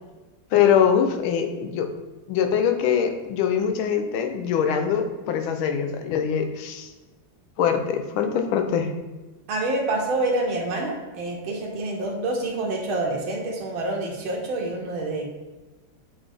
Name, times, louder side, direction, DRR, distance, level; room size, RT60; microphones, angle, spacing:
voice 1, 0.5-1.9 2.3-6.9 7.6-8.9, left 8 dB, 75° left, 6 dB, 1.5 m, -23 dB
voice 2, 9.5-15.3, right 2 dB, 75° right, 0 dB, 1.6 m, -27 dB
7.5 x 4.0 x 3.4 m, 1.2 s
omnidirectional pair, 2.3 m